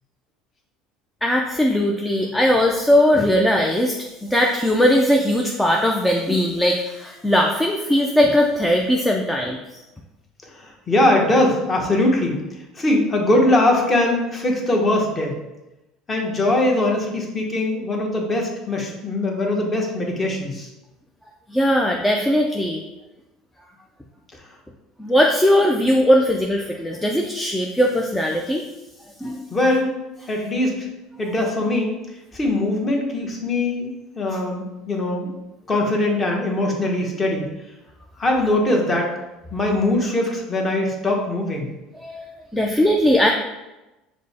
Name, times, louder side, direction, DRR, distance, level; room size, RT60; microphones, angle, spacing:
voice 1, 1.2-9.8 21.5-22.8 25.0-28.6 29.2-29.4 34.3-34.4 42.0-42.2 42.5-43.3, equal, 5° left, 0 dB, 0.4 m, -19 dB
voice 2, 10.6-12.4 12.8-15.4 16.1-20.7 29.5-29.9 30.3-30.9 31.2-31.9 32.3-35.3 35.7-37.5 38.2-39.1 39.5-41.7, left 1 dB, 20° left, 0 dB, 0.9 m, -21 dB
5.3 x 2.0 x 4.1 m, 1.0 s
supercardioid pair, 125°, 0 cm